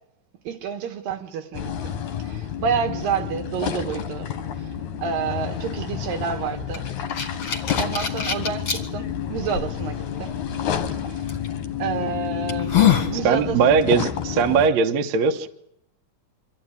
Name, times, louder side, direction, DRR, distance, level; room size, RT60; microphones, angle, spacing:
voice 1, 0.4-1.9 2.2-4.7 5.0-6.9 7.8-10.4 11.0-11.3 11.8-13.6, right 6 dB, 80° right, 3.1 m, -29 dB
sound 1, 1.5-14.7, left 8 dB, 65° left, 2.4 m, -29 dB
sound 2, 6.7-8.8 9.5-9.6 11.3-11.5 12.0-12.1 12.5-13.1, left 9 dB, 45° left, 2.6 m, -22 dB
voice 2, 13.2-15.5, right 6 dB, 65° right, 1.9 m, -20 dB
25.0 x 14.5 x 9.6 m
omnidirectional pair, 4.0 m